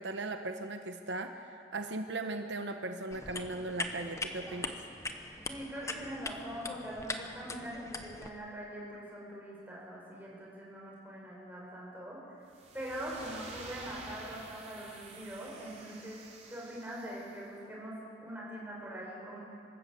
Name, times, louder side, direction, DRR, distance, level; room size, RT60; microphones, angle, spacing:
voice 1, 0.0-4.8, right 2 dB, 75° right, 6 dB, 1.0 m, -38 dB
sound 1, 3.1-8.3, left 3 dB, 15° left, 1.0 m, -41 dB
voice 2, 5.5-12.4 12.7-16.2 16.5-18.0 18.2-19.4, right 1 dB, 10° right, -4 dB, 5.6 m, -43 dB
sound 2, 12.5-17.4, right 3 dB, 40° right, 3.7 m, -50 dB
26.0 x 13.5 x 7.9 m, 2.7 s
head